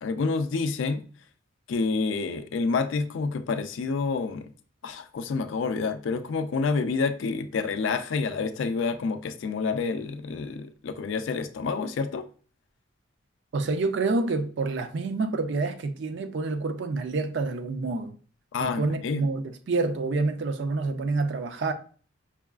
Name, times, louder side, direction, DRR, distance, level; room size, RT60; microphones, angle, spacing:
voice 1, 0.0-1.0 1.7-4.5 4.8-12.3 18.5-19.3, left 4 dB, 70° left, 0.4 m, -28 dB
voice 2, 13.5-18.2 18.6-21.7, right 3 dB, 60° right, 0.4 m, -28 dB
5.6 x 2.3 x 2.3 m
head